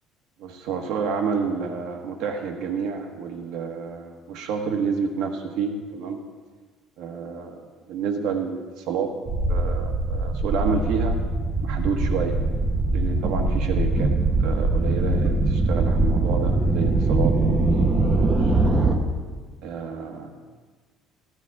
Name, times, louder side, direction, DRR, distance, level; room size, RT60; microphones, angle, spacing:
voice 1, 0.4-6.2 7.0-9.1 9.5-11.2 11.6-12.4 12.9-14.1 14.4-18.5 19.6-20.3, right 5 dB, 75° right, 4 dB, 1.5 m, -29 dB
sound 1, 9.2-18.9, right 2 dB, 25° right, 1.0 m, -22 dB
14.0 x 12.5 x 3.6 m, 1.4 s
cardioid pair, 160°, 0 cm